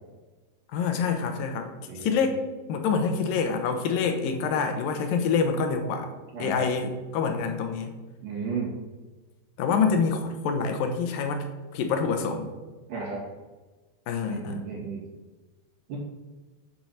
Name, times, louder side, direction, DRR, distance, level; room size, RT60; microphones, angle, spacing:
voice 1, 0.7-1.7 2.0-2.4 2.7-6.1 6.4-7.9 9.6-11.5 11.7-12.5 14.1-14.6, left 5 dB, 70° left, 6 dB, 2.6 m, -26 dB
voice 2, 1.9-2.2 6.3-6.7 8.2-8.7 12.9-13.2 14.3-15.0 15.9-16.0, right 5 dB, 60° right, -4 dB, 3.9 m, -33 dB
8.0 x 7.8 x 5.7 m, 1.3 s
omnidirectional pair, 4.3 m